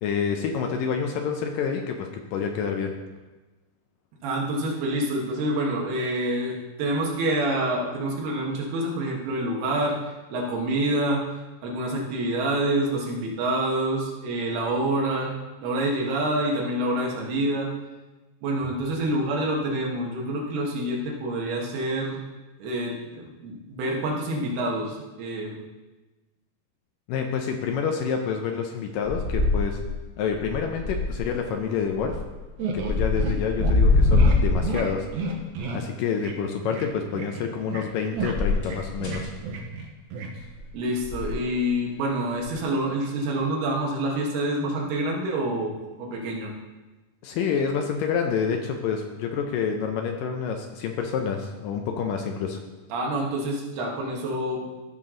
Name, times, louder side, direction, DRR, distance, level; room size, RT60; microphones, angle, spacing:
voice 1, 0.0-2.9 27.1-29.8 30.2-32.2 32.7-35.1 35.7-39.3 47.2-52.6, left 6 dB, 75° left, 4 dB, 2.1 m, -28 dB
voice 2, 4.2-10.0 10.3-11.3 11.6-17.7 18.4-22.2 22.6-25.6 40.7-46.5 52.9-54.7, right 1 dB, 85° right, -1 dB, 3.6 m, -27 dB
sound 1, 29.0-30.0 30.3-31.3 31.9-32.4 32.7-35.2 38.2-39.3 40.4-40.7 41.0-41.4 42.5-42.6, left 3 dB, 30° left, 1.7 m, -23 dB
sound 2, 32.6-33.3 33.6-33.7 34.1-34.4 34.6-34.8 35.1-35.8 36.2-36.3 36.6-36.9 37.1-37.9 38.1-39.9 40.1-40.3, right 4 dB, 65° right, 1.9 m, -31 dB
14.5 x 6.0 x 3.8 m, 1.2 s
omnidirectional pair, 4.5 m